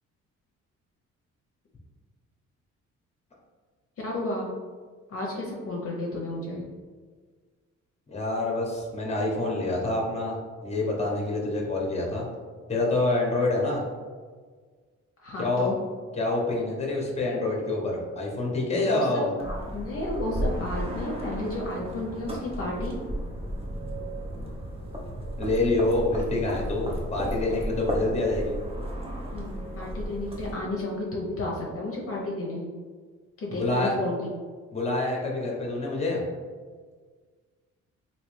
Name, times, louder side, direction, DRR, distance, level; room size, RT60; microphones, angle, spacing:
voice 1, 4.0-4.5 5.1-6.6 15.2-15.7 18.8-23.0 29.3-32.7 33.4-34.3, left 1 dB, 50° left, -3 dB, 0.7 m, -32 dB
voice 2, 8.1-12.3 12.7-13.8 15.4-15.7 16.2-19.3 25.4-28.6 33.6-34.0 34.7-36.2, left 2 dB, 20° left, -1 dB, 0.9 m, -27 dB
sound 1, 19.4-30.5, equal, 20° right, 0.7 m, -34 dB
3.1 x 2.8 x 3.1 m, 1.5 s
cardioid pair, 90°, 30 cm